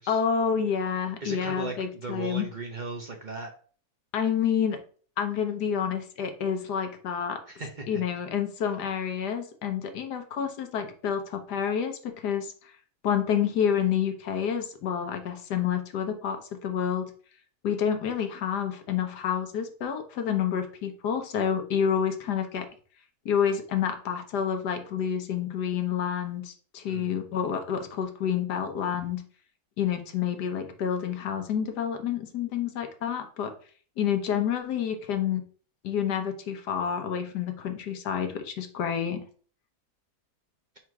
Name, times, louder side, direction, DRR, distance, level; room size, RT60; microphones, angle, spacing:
voice 1, 0.1-2.5 4.1-4.8 5.2-7.4 7.9-12.5 13.0-17.1 17.6-22.7 23.2-29.2 29.8-33.5 34.0-35.4 35.8-39.2, left 8 dB, 90° left, 6 dB, 1.5 m, -28 dB
voice 2, 1.2-3.5 7.5-8.0 26.9-27.2, right 3 dB, 40° right, 1 dB, 0.7 m, -37 dB
4.6 x 4.4 x 4.7 m, 0.43 s
omnidirectional pair, 1.7 m